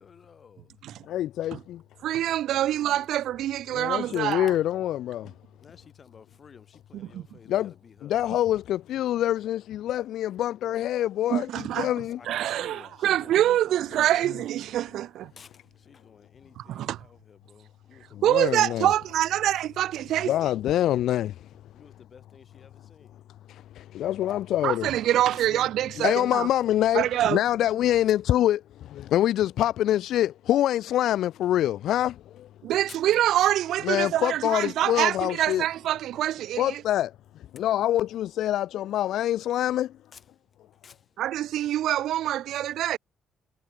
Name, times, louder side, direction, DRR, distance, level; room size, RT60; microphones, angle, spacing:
voice 1, 0.0-0.7 2.5-2.7 5.6-8.1 11.9-14.3 15.4-18.5 18.9-19.3 21.7-23.2 25.4-25.5 32.9-33.0 37.5-37.6 40.1-40.2 40.8-41.1, left 6 dB, 45° left, 6.6 m, -52 dB
voice 2, 1.1-1.6 3.7-5.2 7.5-7.7 8.1-11.5 11.8-12.2 18.2-18.9 20.3-21.3 24.0-24.9 26.0-28.6 29.1-32.1 33.8-35.6 36.6-37.1 37.5-39.9, left 12 dB, 80° left, 0.4 m, -25 dB
voice 3, 2.0-4.5 6.9-7.2 11.3-11.9 12.3-15.3 16.6-17.0 18.2-20.3 24.6-26.5 26.9-27.4 32.6-36.8 41.2-43.0, right 12 dB, 80° right, 0.9 m, -25 dB
cardioid pair, 90°, 0 cm